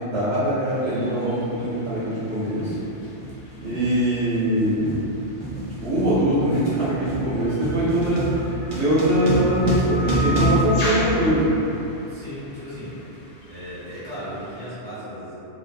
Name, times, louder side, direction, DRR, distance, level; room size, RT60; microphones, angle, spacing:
voice 1, 0.0-2.7 3.6-5.0 5.3-8.3 8.7-11.5, right 1 dB, 55° right, -16 dB, 0.9 m, -22 dB
sound 1, 0.6-14.7, equal, 75° left, 1.0 m, -36 dB
sound 2, 1.6-1.7 2.7-2.9 3.2-11.7, equal, 75° right, 0.4 m, -28 dB
voice 2, 12.0-13.0 13.5-15.3, equal, 25° right, -15 dB, 1.3 m, -36 dB
2.6 x 2.0 x 2.5 m, 2.8 s
omnidirectional pair, 1.4 m